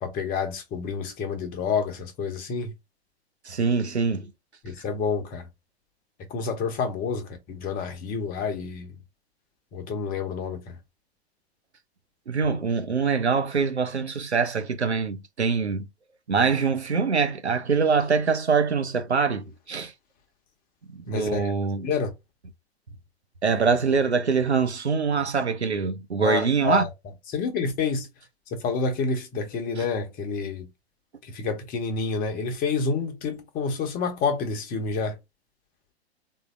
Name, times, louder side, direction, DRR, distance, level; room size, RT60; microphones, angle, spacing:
voice 1, 0.0-2.7 4.6-5.5 6.2-9.0 9.7-10.8 21.1-21.5 21.8-22.1 26.2-26.9 27.3-28.1 28.5-30.7 31.2-35.2, left 5 dB, 25° left, 0.9 m, -29 dB
voice 2, 3.5-4.3 12.3-15.9 16.3-19.9 20.9-21.9 23.4-26.9 29.8-29.9, right 5 dB, 90° right, 0.7 m, -24 dB
3.6 x 2.7 x 2.5 m
figure-of-eight pair, 105°, 33 cm